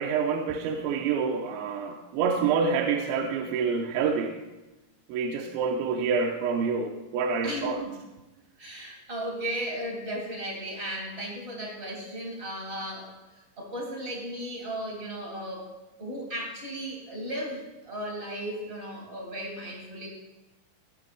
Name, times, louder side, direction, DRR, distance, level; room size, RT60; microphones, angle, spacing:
voice 1, 0.0-4.4 5.1-7.8, right 5 dB, 90° right, 2 dB, 3.0 m, -27 dB
voice 2, 7.4-8.0 8.6-13.1 13.6-15.7 16.0-20.1, equal, 70° right, -1 dB, 0.5 m, -35 dB
16.5 x 6.1 x 5.0 m, 1.1 s
omnidirectional pair, 5.2 m